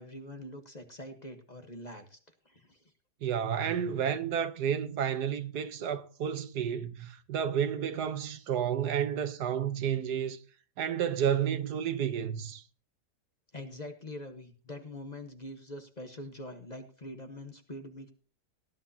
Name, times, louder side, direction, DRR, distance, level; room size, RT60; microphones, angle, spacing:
voice 1, 0.0-2.2 2.4-2.9 13.5-18.1, left 1 dB, 30° left, 1.2 m, -44 dB
voice 2, 3.2-10.4 10.8-12.6, right 8 dB, 75° right, 1.5 m, -31 dB
18.5 x 10.5 x 2.8 m
omnidirectional pair, 1.8 m